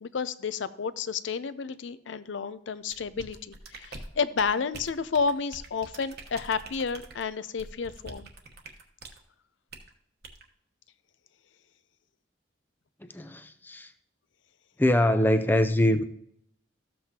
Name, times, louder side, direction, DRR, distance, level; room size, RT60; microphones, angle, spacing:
voice 1, 0.0-8.3, left 5 dB, 75° left, 15 dB, 0.5 m, -31 dB
sound 1, 2.9-9.2 9.7-9.9 10.2-10.4, right 3 dB, 55° right, 1.1 m, -45 dB
voice 2, 13.0-13.9 14.8-16.0, left 1 dB, 10° left, 9 dB, 0.5 m, -23 dB
13.5 x 7.7 x 2.8 m, 0.73 s
head